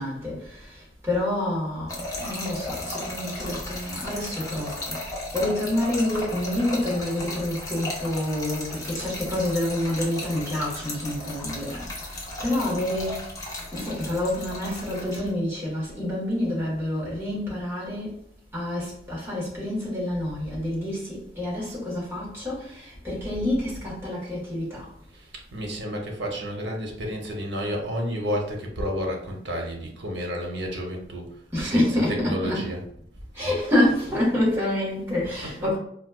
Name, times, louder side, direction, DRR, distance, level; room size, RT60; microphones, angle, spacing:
voice 1, 0.0-13.4 13.7-18.2 18.5-24.9 31.5-32.7 33.3-35.8, left 1 dB, 15° right, 1.2 m, -28 dB
Trickle dribble / Fill (with liquid), 1.9-15.3, left 2 dB, 20° left, 0.6 m, -35 dB
voice 2, 25.5-31.3 31.6-32.8 34.1-34.2 35.2-35.7, equal, 80° right, 0.8 m, -31 dB
4.0 x 2.3 x 2.3 m
head